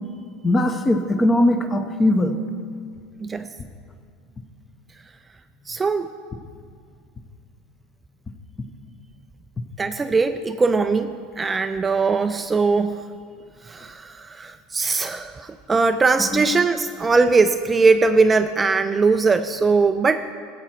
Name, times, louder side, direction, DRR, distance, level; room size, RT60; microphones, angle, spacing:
voice 1, 0.4-2.4 16.3-16.7, left 1 dB, 20° left, 7 dB, 0.9 m, -20 dB
voice 2, 5.7-6.1 9.8-13.1 13.6-20.3, right 4 dB, 20° right, 9 dB, 0.4 m, -20 dB
14.5 x 7.8 x 4.5 m, 2.2 s
supercardioid pair, 105°, 0 cm